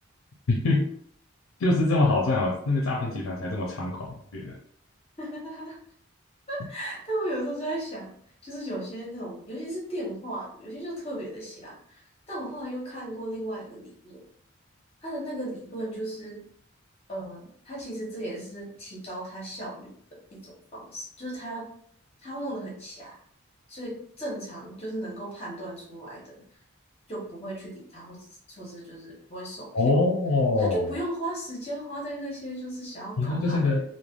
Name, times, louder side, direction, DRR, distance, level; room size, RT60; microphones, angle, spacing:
voice 1, 0.5-0.8 1.6-4.5 29.7-30.9 33.2-33.8, left 2 dB, 75° left, 0 dB, 0.5 m, -24 dB
voice 2, 5.2-5.8 6.5-8.1 8.4-14.2 15.0-16.4 17.1-19.9 20.3-21.7 22.2-23.2 23.7-26.4 27.1-29.7 30.6-33.8, right 1 dB, 30° left, -4 dB, 0.9 m, -36 dB
3.2 x 2.1 x 2.4 m, 0.65 s
head